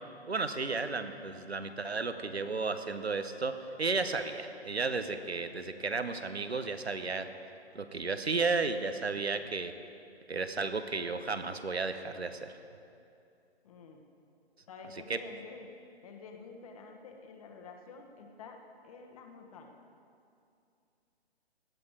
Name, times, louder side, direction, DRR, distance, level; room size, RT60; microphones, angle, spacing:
voice 1, 0.3-7.3 7.7-9.7 10.3-12.6 15.1-15.2, right 4 dB, 75° right, 9 dB, 1.1 m, -33 dB
voice 2, 13.6-14.0 14.7-15.7 16.0-19.8, left 4 dB, 35° left, 4 dB, 1.4 m, -49 dB
17.5 x 11.5 x 4.9 m, 2.5 s
figure-of-eight pair, 135°, 32 cm